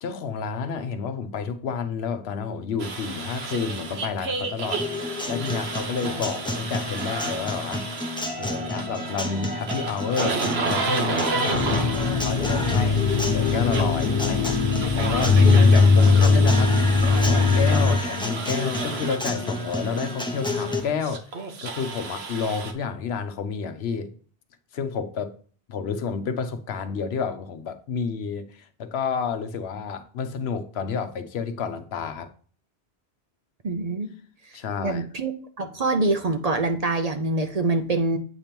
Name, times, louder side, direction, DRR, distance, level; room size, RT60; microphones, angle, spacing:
voice 1, 0.0-4.8 5.3-7.9 8.3-10.4 10.7-11.9 12.1-13.0 13.3-14.6 14.9-16.8 17.1-21.2 21.6-24.1 24.7-25.3 25.7-32.3 34.5-35.1, left 5 dB, 75° left, 1.0 m, -30 dB
sound 1, 2.8-22.7, right 3 dB, 70° right, 1.1 m, -32 dB
Guitar, 4.8-20.8, left 2 dB, 5° left, 0.7 m, -31 dB
sound 2, 11.5-18.0, left 4 dB, 45° left, 0.5 m, -19 dB
voice 2, 33.6-34.1 34.8-35.3 35.6-38.2, right 2 dB, 45° right, 0.6 m, -25 dB
8.0 x 3.0 x 5.1 m
omnidirectional pair, 1.1 m